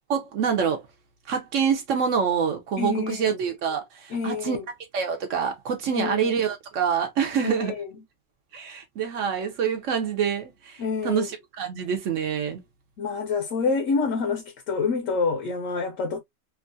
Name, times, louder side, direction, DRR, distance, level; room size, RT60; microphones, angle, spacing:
voice 1, 0.1-0.8 1.3-4.6 4.9-7.7 8.5-12.6, right 7 dB, 70° right, 1.0 m, -26 dB
voice 2, 2.8-3.4 4.1-4.7 5.9-6.3 7.4-7.9 10.8-11.3 13.0-16.2, left 4 dB, 75° left, 1.0 m, -27 dB
3.0 x 2.3 x 2.5 m
omnidirectional pair, 1.4 m